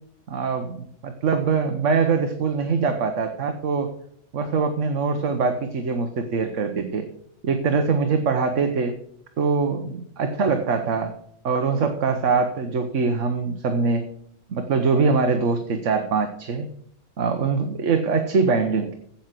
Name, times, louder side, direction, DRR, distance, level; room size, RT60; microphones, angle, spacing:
voice 1, 0.3-3.9 4.3-7.0 7.4-8.9 9.4-11.1 11.4-14.0 14.5-16.7 17.2-18.9, right 4 dB, 65° right, 6 dB, 1.3 m, -23 dB
8.7 x 8.1 x 7.5 m, 0.67 s
omnidirectional pair, 1.4 m